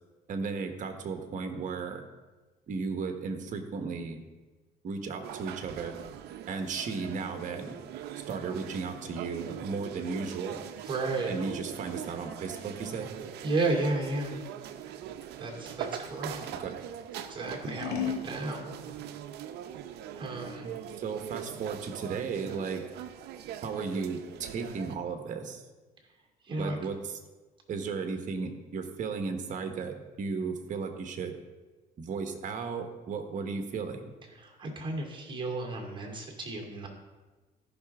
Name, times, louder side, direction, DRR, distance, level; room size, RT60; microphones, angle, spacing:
voice 1, 0.3-2.0 2.7-4.2 4.8-6.0 6.5-7.8 8.3-10.6 11.3-13.1 16.6-16.8 21.0-22.8 23.6-25.6 26.6-27.1 27.7-31.3 32.0-34.2, right 5 dB, 50° right, 6 dB, 1.3 m, -35 dB
sound 1, 5.2-25.0, right 10 dB, 80° right, 0.6 m, -42 dB
Scissors, 10.4-16.6 17.1-18.3, left 8 dB, 75° left, 1.7 m, -40 dB
voice 2, 10.8-11.3 13.4-14.3 15.4-16.4 17.1-18.7 20.2-20.7 26.4-26.8 34.3-36.9, right 2 dB, 30° right, 0 dB, 2.5 m, -33 dB
14.0 x 5.9 x 3.6 m, 1.2 s
cardioid pair, 110°, 17 cm